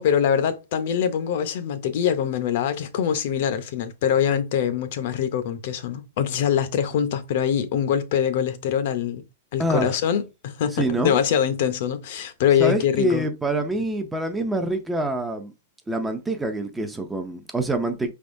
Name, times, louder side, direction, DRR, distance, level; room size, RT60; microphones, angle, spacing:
voice 1, 0.0-9.2 9.5-13.3, left 8 dB, 50° left, 0.6 m, -23 dB
voice 2, 9.6-9.9 10.7-11.1 12.6-15.5 15.9-18.1, right 1 dB, 5° right, 0.4 m, -26 dB
5.2 x 3.5 x 2.5 m
supercardioid pair, 170°, 0 cm